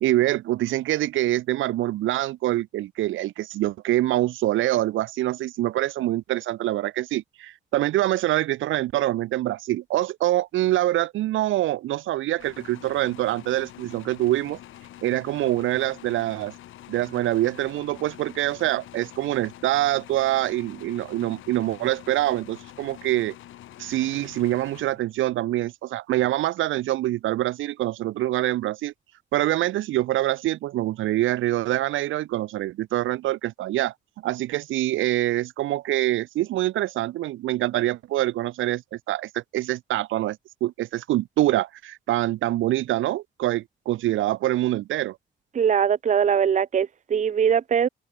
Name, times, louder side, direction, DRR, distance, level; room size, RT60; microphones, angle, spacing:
voice 1, 0.0-14.6 15.0-16.5 16.9-23.3 23.8-28.9 29.3-33.9 34.2-45.2, right 15 dB, 80° right, 0.8 m, -25 dB
sound 1, 12.4-25.4, left 13 dB, 80° left, 4.5 m, -46 dB
voice 2, 45.5-47.9, right 7 dB, 40° right, 0.8 m, -21 dB
cardioid pair, 90°, 20 cm